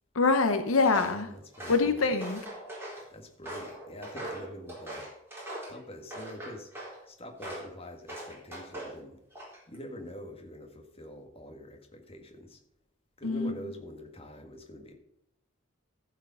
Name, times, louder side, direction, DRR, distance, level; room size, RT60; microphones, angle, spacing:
voice 1, 0.1-1.3 1.7-2.4 13.2-13.5, left 3 dB, 80° left, 0.9 m, -25 dB
Walk footsteps, 0.8-1.2 1.5-3.0 3.4-5.8 6.1-7.0 7.4-7.7 8.1-9.0 9.3-9.8, right 1 dB, 10° right, 4.0 m, -41 dB
voice 2, 1.2-2.0 3.1-5.1 5.7-6.7 7.0-9.2 9.7-12.6 13.2-14.9, equal, 30° left, 1.8 m, -45 dB
14.5 x 5.1 x 5.6 m
head